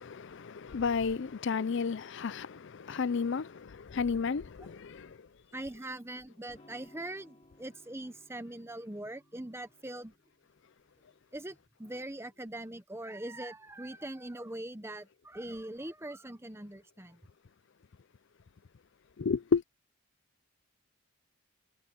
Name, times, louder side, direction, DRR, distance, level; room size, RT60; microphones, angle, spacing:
voice 1, 0.0-5.2 19.2-19.6, left 5 dB, 55° left, 0.5 m, -32 dB
voice 2, 5.5-10.1 11.3-17.2, right 1 dB, 10° right, 1.0 m, -42 dB
Electric guitar / Strum, 6.5-12.2, left 1 dB, 30° left, 3.1 m, -63 dB
head